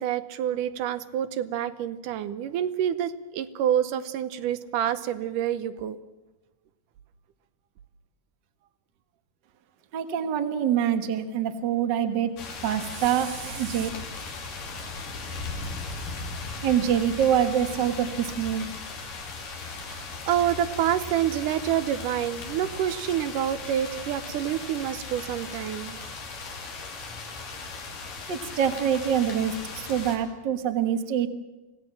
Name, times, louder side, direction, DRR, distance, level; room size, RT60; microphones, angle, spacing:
voice 1, 0.0-6.0 19.5-26.0, right 10 dB, 80° right, 12 dB, 2.4 m, -28 dB
voice 2, 9.9-12.3 12.6-13.9 16.6-18.7 28.3-31.3, right 9 dB, 45° right, 8 dB, 1.5 m, -25 dB
sound 1, 12.4-30.2, left 4 dB, 85° left, 4.7 m, -37 dB
25.0 x 17.0 x 7.4 m, 1.1 s
omnidirectional pair, 3.7 m